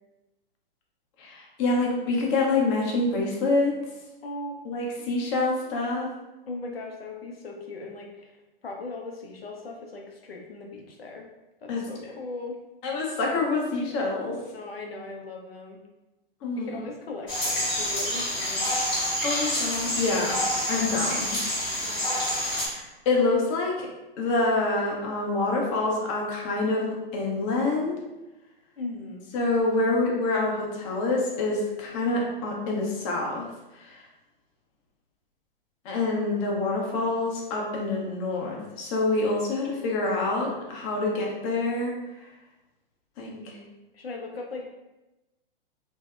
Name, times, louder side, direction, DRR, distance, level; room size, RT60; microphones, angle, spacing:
voice 1, 1.2-3.7 4.6-6.1 11.7-11.8 12.8-14.4 16.4-16.8 19.2-20.4 20.7-21.4 22.6-23.9 24.2-28.0 29.3-33.5 33.7-34.0 35.8-42.0 43.2-43.3, left 3 dB, 35° left, -1 dB, 0.6 m, -26 dB
voice 2, 4.2-4.7 6.5-8.4 8.6-11.3 11.6-12.6 14.5-15.8 16.6-18.7 21.8-22.1 28.8-29.3 43.2-44.7, left 3 dB, 85° left, 1 dB, 0.5 m, -39 dB
sound 1, 17.3-22.7, equal, 15° left, 1.0 m, -27 dB
2.6 x 2.0 x 2.3 m, 1.0 s
figure-of-eight pair, 110°, 29 cm